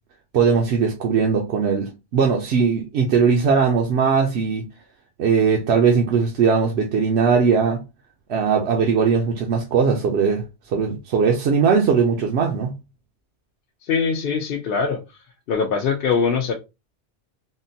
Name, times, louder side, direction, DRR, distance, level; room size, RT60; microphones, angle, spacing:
voice 1, 0.3-4.6 5.2-7.8 8.3-12.8, right 5 dB, 75° right, 0.9 m, -19 dB
voice 2, 13.8-15.2 15.5-16.5, left 5 dB, 65° left, 0.7 m, -22 dB
3.7 x 2.1 x 2.6 m
omnidirectional pair, 1.1 m